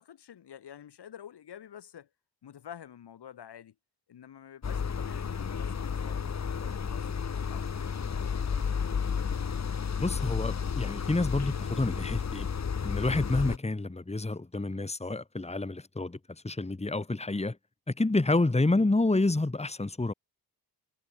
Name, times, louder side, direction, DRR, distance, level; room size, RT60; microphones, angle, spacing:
voice 1, 0.0-2.1 2.4-3.7 4.1-9.5, left 9 dB, 85° left, 3.7 m, -50 dB
sound 1, 4.6-13.6, left 6 dB, 45° left, 1.3 m, -32 dB
voice 2, 10.0-12.5 12.8-16.2 16.4-17.6 17.9-20.1, left 2 dB, 15° left, 2.0 m, -28 dB
cardioid pair, 70°, 39 cm